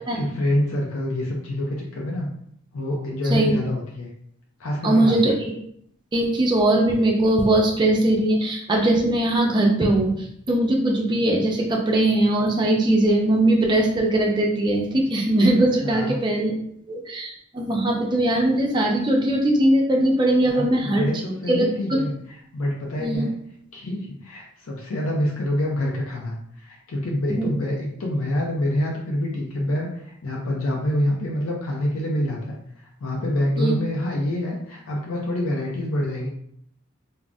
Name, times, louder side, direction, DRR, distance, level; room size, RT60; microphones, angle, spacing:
voice 1, 0.1-2.3 2.7-4.1 4.6-5.1 15.8-16.1 20.5-20.7 21.0-22.1 22.5-23.3 23.7-32.6 33.0-36.3, left 1 dB, 80° left, -2 dB, 0.5 m, -26 dB
voice 2, 4.8-5.3 6.1-16.6 16.9-21.1 21.5-22.0 23.0-23.3 27.3-27.5 33.6-33.7, right 1 dB, 20° right, 0 dB, 0.4 m, -20 dB
2.5 x 2.0 x 3.3 m, 0.68 s
head